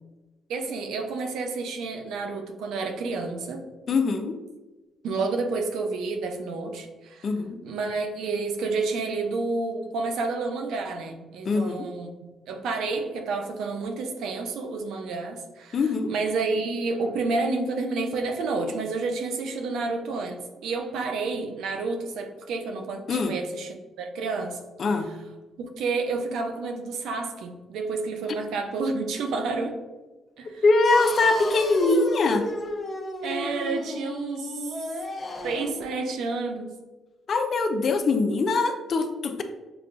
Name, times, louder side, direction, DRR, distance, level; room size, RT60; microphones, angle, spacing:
voice 1, 0.5-3.6 5.0-7.3 7.6-12.1 12.5-24.6 25.8-29.8 30.4-30.6 33.2-34.5 35.4-36.7, right 3 dB, 80° right, 4 dB, 0.6 m, -30 dB
voice 2, 3.9-4.4 7.2-7.6 11.5-11.8 15.7-16.1 23.1-23.3 24.8-25.1 30.6-32.5 37.3-39.4, left 3 dB, 50° left, 7 dB, 0.5 m, -22 dB
sound 1, 30.9-35.8, left 1 dB, 35° left, 0.8 m, -34 dB
6.8 x 2.3 x 2.5 m, 1.2 s
cardioid pair, 90°, 0 cm